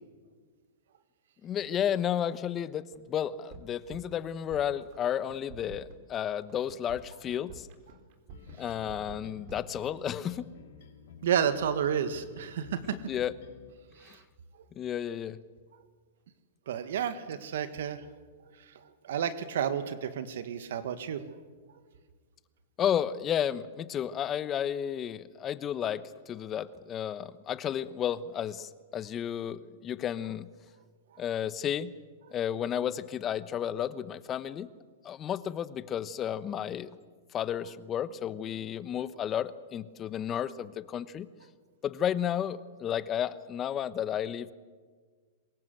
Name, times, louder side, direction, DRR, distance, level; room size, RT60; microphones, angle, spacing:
voice 1, 1.4-7.7 8.6-10.5 13.1-13.3 14.0-14.2 14.8-15.4 22.8-30.5 31.2-31.9 32.3-34.7 35.0-36.9 37.3-41.3 41.8-44.5, left 9 dB, 30° left, 15 dB, 1.1 m, -32 dB
sound 1, 2.9-3.0 3.3-4.2 4.5-5.0 5.3-10.1, right 5 dB, 50° right, 3.5 m, -49 dB
sound 2, 8.3-13.7, left 6 dB, 65° left, 4.5 m, -52 dB
voice 2, 11.2-13.0 14.0-14.2 16.7-18.1 19.0-21.2, right 8 dB, 70° right, 11 dB, 1.7 m, -31 dB
23.5 x 21.0 x 8.0 m, 1.5 s
hypercardioid pair, 120°, 0 cm